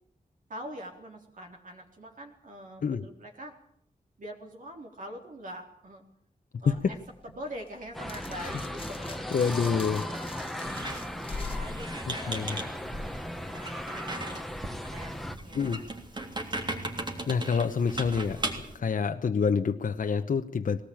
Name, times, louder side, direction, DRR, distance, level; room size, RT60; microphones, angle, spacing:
voice 1, 0.5-3.6 4.2-6.0 6.6-7.0 7.3-9.3 9.5-10.7 11.3-14.5 14.9-15.9 18.3-19.0, equal, 65° right, 1 dB, 3.7 m, -44 dB
sound 1, 6.7-13.0, left 3 dB, 35° left, 1.5 m, -43 dB
sound 2, 7.9-15.4, left 1 dB, ahead, 1.3 m, -37 dB
voice 2, 9.3-10.1 12.1-12.6 15.5-15.8 17.3-18.4 18.7-20.8, left 6 dB, 65° left, 6 dB, 0.9 m, -27 dB
Squeak, 10.7-18.8, right 1 dB, 30° right, 3.3 m, -38 dB
20.5 x 18.5 x 8.9 m, 0.65 s
wide cardioid pair, 155°, 15 cm